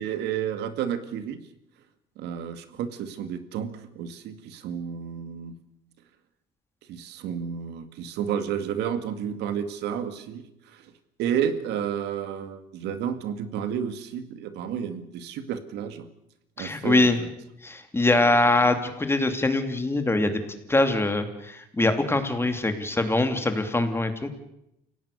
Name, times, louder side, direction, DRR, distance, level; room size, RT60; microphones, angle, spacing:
voice 1, 0.0-1.4 2.2-5.5 6.9-10.9 11.2-16.1 16.6-17.1, right 8 dB, 85° right, 10 dB, 2.2 m, -31 dB
voice 2, 16.6-17.2 17.6-20.4 20.7-24.3, left 2 dB, 15° left, 7 dB, 2.7 m, -23 dB
29.5 x 17.0 x 6.8 m, 0.84 s
cardioid pair, 110°, 17 cm